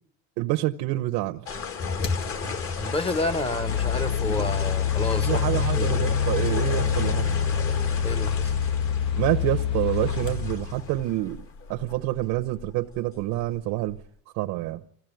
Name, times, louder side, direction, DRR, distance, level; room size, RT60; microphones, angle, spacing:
voice 1, 0.4-1.5 5.3-7.3 9.2-11.4 11.7-14.0 14.3-14.8, right 17 dB, 70° right, 0.9 m, -27 dB
sound 1, 1.5-14.0, left 5 dB, 45° left, 2.2 m, -34 dB
sound 2, 2.0-2.2 3.1-11.2, left 7 dB, 70° left, 2.3 m, -26 dB
voice 2, 2.8-6.2 8.0-8.5, left 2 dB, 20° left, 1.1 m, -30 dB
25.0 x 15.5 x 9.2 m
cardioid pair, 115°, 31 cm